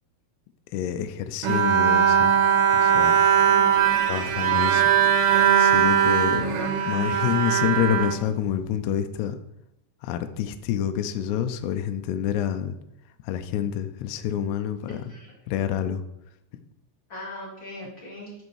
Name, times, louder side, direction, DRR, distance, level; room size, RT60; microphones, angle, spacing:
voice 1, 0.7-2.3 2.7-3.2 4.1-6.5 6.8-9.4 10.0-12.8 13.2-15.0 15.5-16.0, left 9 dB, 80° left, 8 dB, 2.5 m, -28 dB
Bowed string instrument, 1.4-8.8, right 8 dB, 75° right, 2.4 m, -20 dB
voice 2, 3.5-4.0 14.9-15.4 17.1-18.3, left 1 dB, 40° left, -5 dB, 2.0 m, -39 dB
7.8 x 6.5 x 4.7 m, 0.84 s
omnidirectional pair, 5.3 m